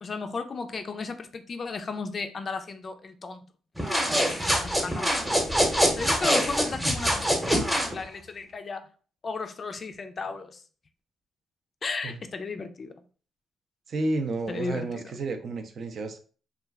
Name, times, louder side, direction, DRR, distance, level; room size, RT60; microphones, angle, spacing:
voice 1, 0.0-3.4 4.2-5.5 6.0-8.9 9.2-10.6 11.8-12.9 14.5-15.0, left 4 dB, 40° left, 0.4 m, -35 dB
sound 1, 3.8-7.9, equal, 5° right, 0.8 m, -24 dB
voice 2, 13.9-16.2, right 2 dB, 55° right, 0.5 m, -31 dB
2.3 x 2.1 x 3.4 m
cardioid pair, 90°, 0 cm